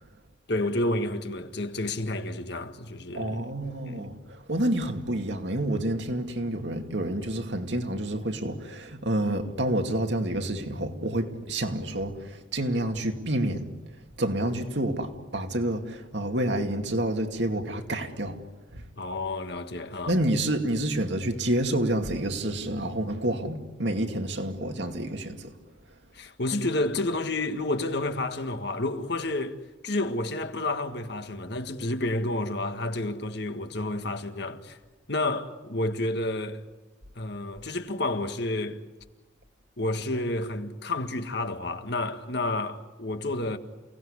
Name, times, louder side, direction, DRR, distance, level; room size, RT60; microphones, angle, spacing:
voice 1, 0.5-3.5 3.9-4.0 19.0-20.2 26.1-29.6 29.8-34.8 35.1-36.6 37.1-38.8 39.8-43.6, left 2 dB, 60° left, 1.8 m, -30 dB
voice 2, 3.1-13.7 14.2-18.4 18.7-18.8 20.1-25.5, right 1 dB, 65° right, 2.5 m, -28 dB
29.0 x 18.5 x 9.9 m
head